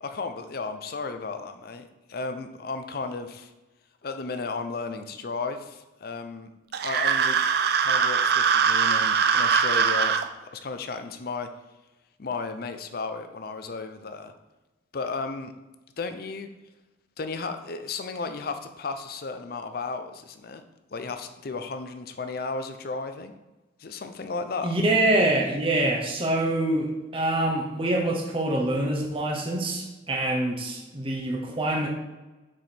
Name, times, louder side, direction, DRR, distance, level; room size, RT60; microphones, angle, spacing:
voice 1, 0.0-3.5 4.0-6.5 6.8-7.4 7.8-10.1 10.5-11.5 12.2-14.3 14.9-15.5 16.0-16.5 17.2-20.6 20.9-23.3 23.8-24.7, left 4 dB, 50° left, 8 dB, 0.5 m, -34 dB
sound 1, 6.7-10.2, right 6 dB, 55° right, 0.4 m, -22 dB
voice 2, 24.6-31.9, right 1 dB, 30° right, 0 dB, 0.8 m, -25 dB
6.1 x 4.7 x 4.3 m, 1.1 s
head